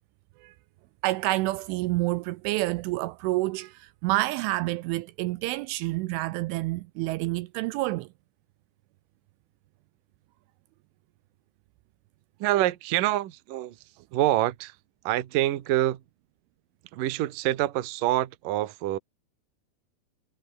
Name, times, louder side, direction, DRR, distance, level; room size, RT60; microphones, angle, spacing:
voice 1, 1.0-8.1, right 19 dB, 80° right, 3.0 m, -28 dB
voice 2, 12.4-13.8 14.1-14.8 15.0-16.0 16.9-19.0, right 15 dB, 60° right, 2.4 m, -26 dB
omnidirectional pair, 5.8 m